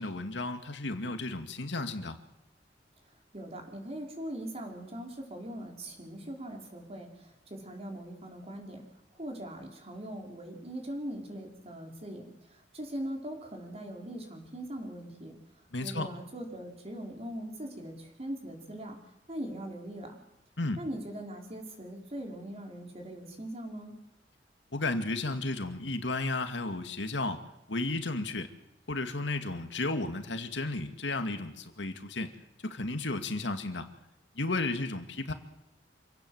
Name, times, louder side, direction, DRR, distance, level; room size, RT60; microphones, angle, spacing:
voice 1, 0.0-2.2 15.7-16.1 20.6-20.8 24.7-27.4 27.7-28.5 28.9-32.3 32.6-33.9 34.4-35.3, left 2 dB, 80° left, 7 dB, 2.2 m, -33 dB
voice 2, 3.3-8.8 9.1-12.2 12.5-15.4 15.8-19.0 19.3-20.2 20.8-23.9, right 1 dB, 35° right, 2 dB, 4.9 m, -41 dB
27.5 x 17.0 x 8.0 m, 0.87 s
head